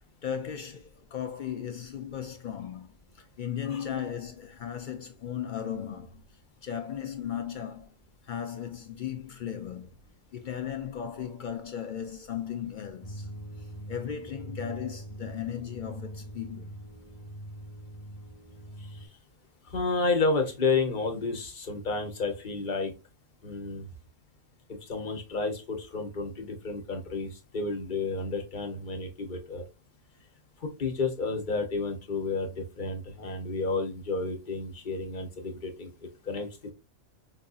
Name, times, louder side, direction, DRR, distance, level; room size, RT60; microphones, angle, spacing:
voice 1, 0.2-6.2 6.6-7.9 8.3-9.9 10.3-13.3 13.9-16.7, left 9 dB, 60° left, 0.5 m, -36 dB
sound 1, 13.0-19.1, right 1 dB, 15° left, 1.2 m, -43 dB
voice 2, 19.7-22.9 23.4-23.8 24.9-29.6 30.6-35.9 36.3-36.5, left 3 dB, 40° left, 1.0 m, -31 dB
5.2 x 2.6 x 2.3 m
omnidirectional pair, 1.3 m